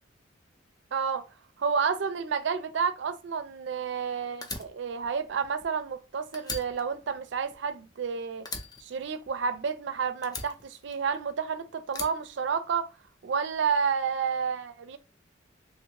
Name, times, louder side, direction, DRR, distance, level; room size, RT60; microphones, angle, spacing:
voice 1, 0.9-1.3 1.6-8.5 8.8-12.9 13.2-15.0, right 6 dB, 65° right, 0.4 m, -30 dB
Fire, 4.4-6.0 6.3-8.1 8.5-9.8 10.2-11.4 11.9-13.1, left 3 dB, 20° left, 0.5 m, -40 dB
3.1 x 2.5 x 2.9 m
head